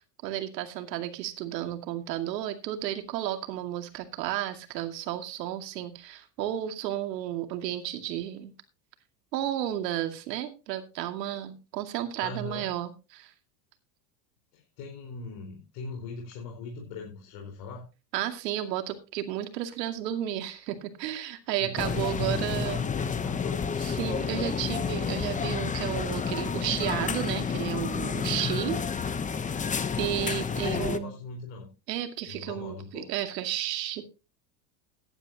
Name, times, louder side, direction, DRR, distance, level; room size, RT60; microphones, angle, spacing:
voice 1, 0.2-8.5 9.3-13.3 18.1-22.9 23.8-28.8 30.0-31.1 31.9-34.1, right 12 dB, 80° right, 7 dB, 2.4 m, -32 dB
voice 2, 12.2-12.7 14.5-17.9 21.6-23.6 30.5-31.7 32.3-33.1, left 3 dB, 60° left, 0 dB, 4.7 m, -40 dB
sound 1, 21.8-31.0, left 6 dB, 15° left, 0.9 m, -30 dB
15.5 x 11.0 x 2.9 m, 0.30 s
supercardioid pair, 120°, 49 cm